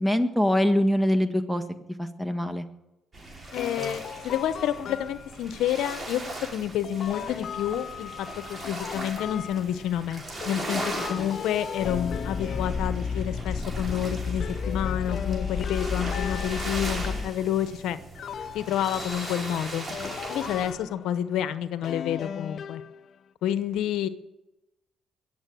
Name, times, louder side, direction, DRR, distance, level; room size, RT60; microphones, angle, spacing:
voice 1, 0.0-1.6 2.0-2.6, left 1 dB, 5° right, 8 dB, 1.6 m, -23 dB
sound 1, 3.1-20.7, right 2 dB, 30° right, 4.7 m, -39 dB
voice 2, 3.5-18.0 18.5-19.8 20.3-22.8 23.4-24.1, left 10 dB, 85° left, 12 dB, 0.9 m, -29 dB
sound 2, 3.5-5.5 6.8-10.0 10.4-13.5 13.9-17.5 18.1-21.3 21.8-23.3, left 8 dB, 65° left, 0.6 m, -38 dB
sound 3, 11.8-17.3, left 5 dB, 35° left, 6.5 m, -31 dB
21.5 x 7.6 x 7.7 m, 0.96 s
cardioid pair, 75°, 0 cm